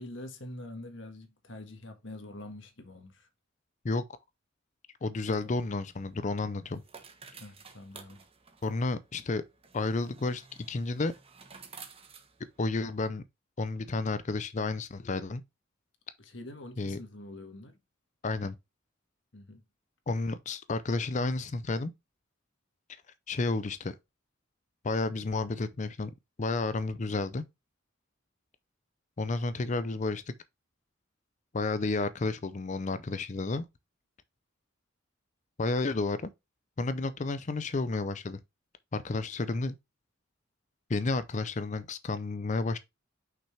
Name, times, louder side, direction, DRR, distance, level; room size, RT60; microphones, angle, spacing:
voice 1, 0.0-3.3 7.4-8.2 16.2-17.8 19.3-19.6, left 1 dB, 65° left, 1.7 m, -45 dB
voice 2, 5.0-6.8 8.6-9.4 9.7-11.1 12.6-13.2 13.6-15.4 16.8-17.0 18.2-18.5 20.1-21.9 23.3-24.0 24.8-26.1 26.4-27.4 29.2-30.3 31.5-33.7 35.6-36.3 36.8-38.4 38.9-39.8 40.9-42.8, left 3 dB, 35° left, 0.5 m, -31 dB
sound 1, 5.4-13.1, right 5 dB, 30° right, 1.1 m, -53 dB
5.9 x 5.5 x 3.3 m
head